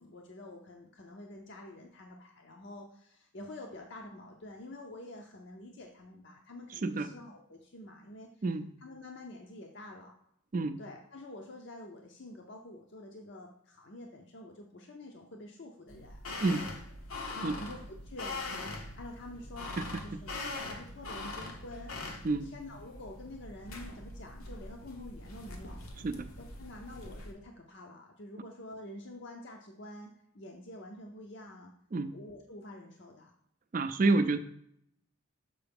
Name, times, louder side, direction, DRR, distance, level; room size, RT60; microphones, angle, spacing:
voice 1, 0.0-8.3 8.8-10.1 10.8-16.2 17.3-25.8 26.4-31.7 32.1-33.3 34.0-34.2, left 1 dB, 55° left, 2 dB, 0.6 m, -48 dB
sound 1, 15.9-27.3, left 2 dB, 80° left, 1.0 m, -42 dB
voice 2, 33.7-34.4, right 3 dB, 40° right, 11 dB, 0.4 m, -28 dB
6.8 x 4.7 x 3.5 m, 0.72 s
head